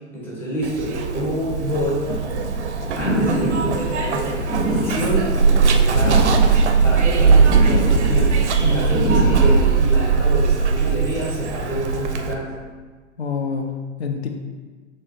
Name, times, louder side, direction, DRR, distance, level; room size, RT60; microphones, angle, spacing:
voice 1, 0.1-2.0 2.9-6.4 6.8-12.5, equal, 5° left, -6 dB, 0.4 m, -27 dB
Zipper (clothing), 0.6-12.3, right 5 dB, 70° right, 0.5 m, -19 dB
sound 1, 2.1-9.6, right 1 dB, 85° left, 0.9 m, -26 dB
voice 2, 8.6-9.0 13.2-14.3, left 4 dB, 60° left, 4 dB, 0.6 m, -27 dB
6.2 x 2.2 x 2.8 m, 1.4 s
figure-of-eight pair, 105°, 36 cm